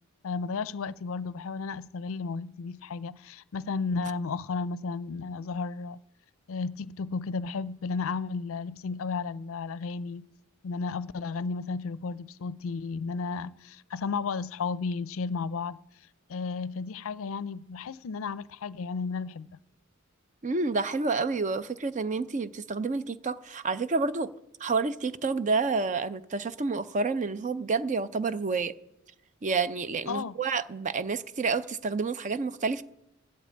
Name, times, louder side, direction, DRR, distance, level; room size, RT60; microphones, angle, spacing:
voice 1, 0.2-6.0 6.5-10.3 10.6-15.8 16.3-19.6 30.1-30.4, left 4 dB, 70° left, 0.4 m, -33 dB
voice 2, 20.4-24.3 24.6-28.7 29.4-32.8, right 4 dB, 35° right, 0.5 m, -29 dB
14.0 x 8.6 x 8.6 m
head